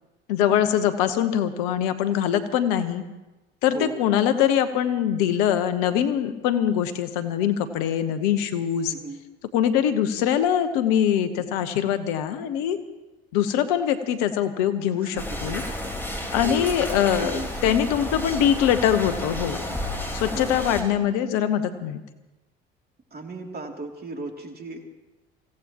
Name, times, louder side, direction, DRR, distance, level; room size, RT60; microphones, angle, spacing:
voice 1, 0.3-3.0 3.6-8.9 9.5-12.8 13.3-15.6 16.3-19.6 20.1-22.0, left 9 dB, 70° left, 10 dB, 1.1 m, -23 dB
voice 2, 8.8-9.2 15.0-16.0 16.3-16.8 17.2-17.8 20.3-20.5 23.1-24.9, right 3 dB, 35° right, 2 dB, 2.8 m, -36 dB
sound 1, 15.2-20.8, left 1 dB, 10° left, 4.2 m, -31 dB
25.0 x 16.5 x 3.0 m, 1.1 s
hypercardioid pair, 60°, 29 cm